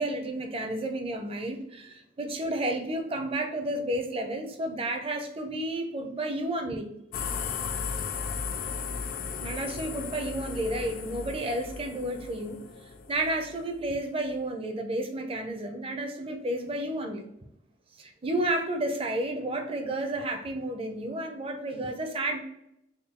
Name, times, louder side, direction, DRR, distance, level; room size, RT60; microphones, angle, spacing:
voice 1, 0.0-6.9 9.4-12.6 13.1-17.3 18.0-22.4, right 1 dB, 30° right, 4 dB, 0.5 m, -31 dB
sound 1, 7.1-13.9, left 5 dB, 50° left, 0.3 m, -36 dB
3.6 x 2.3 x 3.6 m, 0.79 s
head